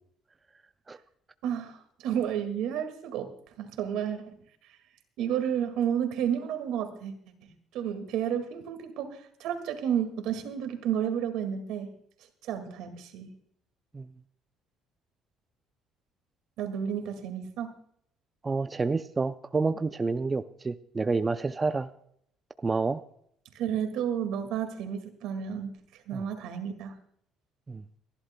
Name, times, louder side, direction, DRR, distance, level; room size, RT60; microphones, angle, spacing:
voice 1, 1.4-3.3 3.6-4.2 5.2-7.1 7.7-11.9 12.4-13.3 16.6-17.7 23.5-25.7 26.1-27.0, right 9 dB, 75° right, 8 dB, 1.9 m, -31 dB
voice 2, 18.4-21.9 22.6-23.0 26.1-26.2 27.7-27.8, right 4 dB, 20° right, 10 dB, 0.4 m, -29 dB
29.5 x 11.5 x 2.2 m, 0.67 s
cardioid pair, 130°, 0 cm